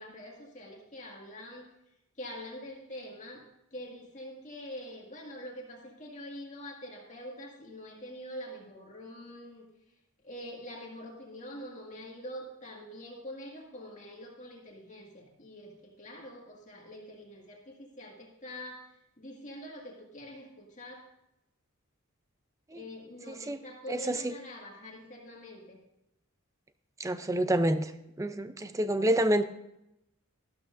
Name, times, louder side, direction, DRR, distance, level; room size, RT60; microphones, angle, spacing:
voice 1, 0.0-1.7 2.2-3.4 3.7-9.7 10.2-18.8 19.2-21.0 22.7-25.8, left 1 dB, 35° left, -1 dB, 2.0 m, -45 dB
voice 2, 23.3-23.6 23.9-24.4 27.0-27.9 28.2-29.4, right 1 dB, 15° right, 10 dB, 0.5 m, -28 dB
13.5 x 12.0 x 2.6 m, 0.85 s
head